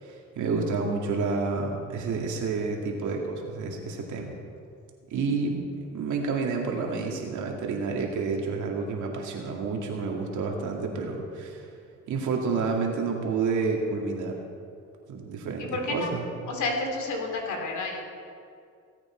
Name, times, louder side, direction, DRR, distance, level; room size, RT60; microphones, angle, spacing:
voice 1, 0.0-4.4 5.1-5.6 5.9-11.7 12.1-14.4 15.1-16.2, right 4 dB, 75° right, 1 dB, 2.2 m, -29 dB
voice 2, 15.6-16.1 16.5-18.0, left 2 dB, 75° left, 1 dB, 2.7 m, -30 dB
18.5 x 8.9 x 4.5 m, 2.4 s
cardioid pair, 90°, 30 cm